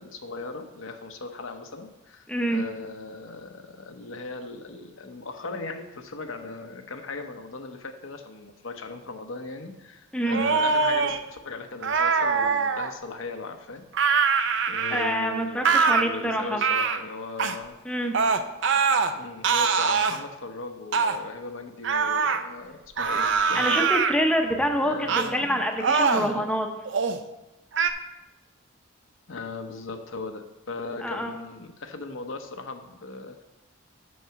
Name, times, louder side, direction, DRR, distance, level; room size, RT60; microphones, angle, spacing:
voice 1, 0.0-13.8 14.7-17.8 19.1-23.9 24.8-25.6 26.0-26.4 29.3-33.4, left 3 dB, 70° left, 5 dB, 0.8 m, -38 dB
voice 2, 2.3-2.6 10.1-10.4 14.9-16.6 17.8-18.2 23.5-26.7 31.0-31.3, equal, 5° left, 3 dB, 0.7 m, -26 dB
sound 1, 10.3-11.2 11.8-12.9 13.9-15.2 15.6-16.0 16.6-17.0 17.4-17.6 18.1-19.1 19.4-20.2 20.9-21.2 21.8-22.4 23.0-24.1 25.1-25.3 25.8-26.3 26.8-27.2 27.7-27.9, right 5 dB, 60° right, 0.5 m, -23 dB
6.7 x 6.3 x 5.8 m, 0.97 s
head